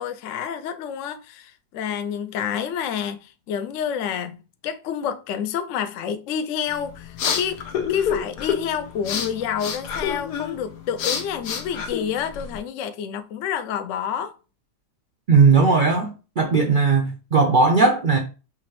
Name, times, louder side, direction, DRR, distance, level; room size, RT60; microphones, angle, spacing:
voice 1, 0.0-14.3, left 8 dB, 70° left, 0.7 m, -29 dB
sound 1, 6.7-12.6, left 7 dB, 90° left, 1.4 m, -29 dB
voice 2, 15.3-16.1 16.4-18.2, right 4 dB, 75° right, 0.4 m, -17 dB
5.9 x 2.9 x 3.0 m
omnidirectional pair, 1.7 m